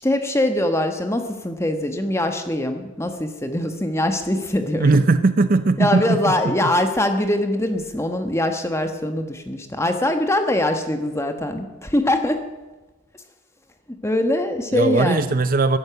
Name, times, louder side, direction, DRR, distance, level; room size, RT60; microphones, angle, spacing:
voice 1, 0.0-5.0 5.8-12.4 13.9-15.4, left 1 dB, 10° left, 6 dB, 1.3 m, -23 dB
voice 2, 4.8-6.7 14.7-15.8, right 3 dB, 40° right, 12 dB, 0.5 m, -19 dB
13.5 x 10.5 x 8.0 m, 1.2 s
head